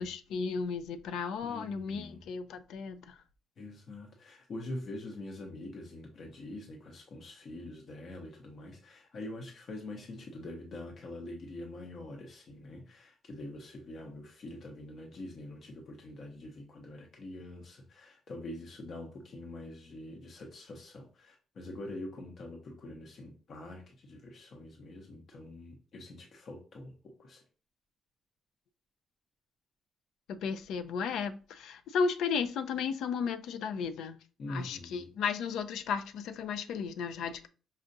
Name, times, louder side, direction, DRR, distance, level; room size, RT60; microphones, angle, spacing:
voice 1, 0.0-3.2 30.3-34.2 34.5-37.5, left 5 dB, 80° left, 0.4 m, -34 dB
voice 2, 1.4-2.2 3.6-27.4 34.4-35.1, left 1 dB, 55° left, 0.7 m, -44 dB
5.3 x 2.4 x 2.6 m
cardioid pair, 90°, 0 cm